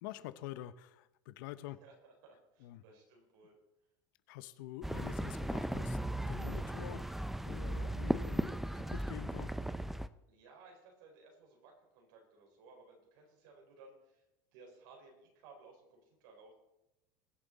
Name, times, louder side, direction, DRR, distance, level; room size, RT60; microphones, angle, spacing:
voice 1, 0.0-1.8 2.6-2.8 4.3-6.0 6.3-9.5, left 14 dB, 70° left, 14 dB, 0.8 m, -47 dB
voice 2, 1.8-3.6 10.3-14.2 14.5-16.5, right 3 dB, 70° right, 1 dB, 4.8 m, -59 dB
sound 1, 4.8-10.1, right 1 dB, ahead, 0.4 m, -36 dB
21.5 x 7.2 x 4.1 m, 0.91 s
supercardioid pair, 130°, 11 cm